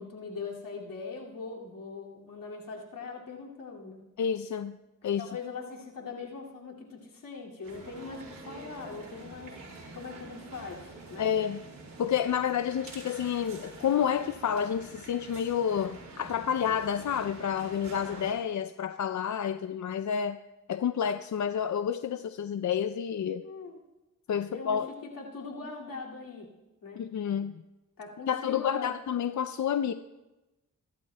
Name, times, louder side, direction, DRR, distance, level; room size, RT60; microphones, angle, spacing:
voice 1, 0.0-4.0 5.0-9.6 9.9-11.3 23.4-23.8 24.5-26.5 26.8-27.0 28.0-28.9, left 4 dB, 75° left, -2 dB, 2.4 m, -41 dB
voice 2, 4.2-4.8 5.0-5.2 11.2-11.6 12.0-20.4 20.7-23.4 24.3-24.9 27.0-27.5 28.3-29.9, left 8 dB, 60° left, 11 dB, 0.5 m, -29 dB
sound 1, 7.6-18.3, right 3 dB, 80° right, 3.8 m, -47 dB
22.0 x 12.0 x 2.2 m, 1.1 s
cardioid pair, 50°, 33 cm